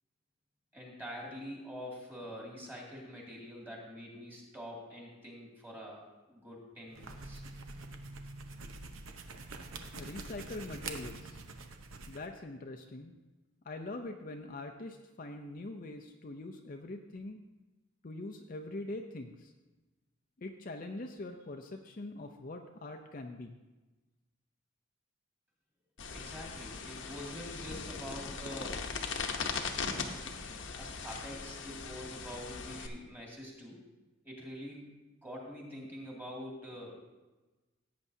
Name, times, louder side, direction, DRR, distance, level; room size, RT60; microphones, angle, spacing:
voice 1, 0.7-7.4 26.1-28.9 30.7-33.8 34.2-37.0, equal, 10° right, -3 dB, 2.2 m, -45 dB
sound 1, 6.9-12.3, right 3 dB, 75° right, 0.8 m, -45 dB
voice 2, 9.9-11.4 12.1-13.2 13.7-17.4 18.0-19.5 20.4-23.6, left 2 dB, 40° left, 3 dB, 0.5 m, -43 dB
sound 2, 26.0-32.9, left 5 dB, 60° left, 0.9 m, -39 dB
16.5 x 8.5 x 2.7 m, 1.1 s
head